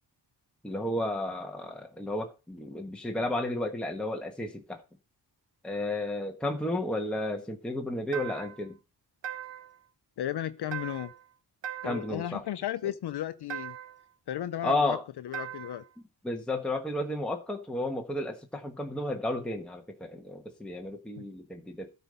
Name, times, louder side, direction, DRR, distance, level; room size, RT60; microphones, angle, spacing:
voice 1, 0.6-4.8 5.6-8.8 11.8-12.4 14.6-15.1 16.2-21.9, left 1 dB, ahead, 1.3 m, -32 dB
sound 1, 8.1-8.7 9.2-9.8 10.7-11.3 11.6-12.2 13.5-14.0 15.3-15.9, right 9 dB, 75° right, 1.3 m, -39 dB
voice 2, 10.2-11.1 11.8-13.8 14.3-15.0 15.2-15.8 21.2-21.3, left 12 dB, 60° left, 0.7 m, -34 dB
13.0 x 5.1 x 5.4 m
cardioid pair, 105°, 44 cm